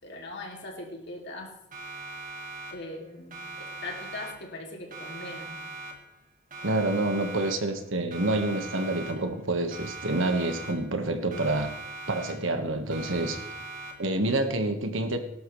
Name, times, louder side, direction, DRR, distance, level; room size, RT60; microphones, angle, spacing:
voice 1, 0.0-1.5 2.7-5.6, left 2 dB, 60° left, 0 dB, 2.9 m, -40 dB
Siren, 1.7-3.0 3.3-4.6 4.9-6.2 6.5-7.8 8.1-9.4 9.7-11.0 11.3-12.6 12.9-14.2, right 2 dB, 45° right, 2.3 m, -41 dB
voice 2, 6.6-11.7 12.1-13.4 14.0-15.2, right 2 dB, 85° right, 6 dB, 1.6 m, -27 dB
18.5 x 11.5 x 3.3 m, 0.76 s
head